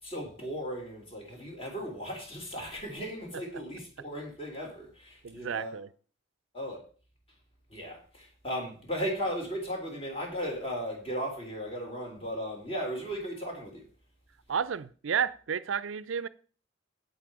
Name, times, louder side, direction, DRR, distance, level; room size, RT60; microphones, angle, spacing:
voice 1, 0.0-5.8 6.5-6.8 7.7-13.9, equal, 30° left, 3.3 m, -36 dB
voice 2, 5.2-5.9 14.5-16.3, right 7 dB, 85° right, 0.5 m, -31 dB
8.9 x 7.8 x 4.7 m
head